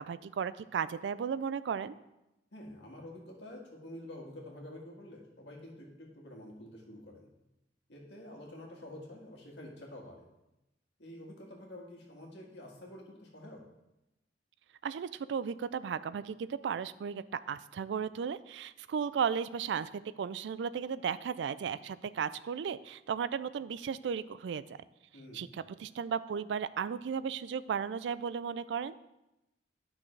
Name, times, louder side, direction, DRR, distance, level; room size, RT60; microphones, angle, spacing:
voice 1, 0.0-1.9 14.8-19.9 20.2-24.8 25.3-25.5 25.8-28.9, right 7 dB, 80° right, 16 dB, 0.3 m, -35 dB
voice 2, 2.5-7.3 7.9-10.3 11.0-13.6 25.1-25.5, left 1 dB, 75° left, -1 dB, 1.8 m, -48 dB
10.5 x 6.0 x 3.3 m, 0.92 s
head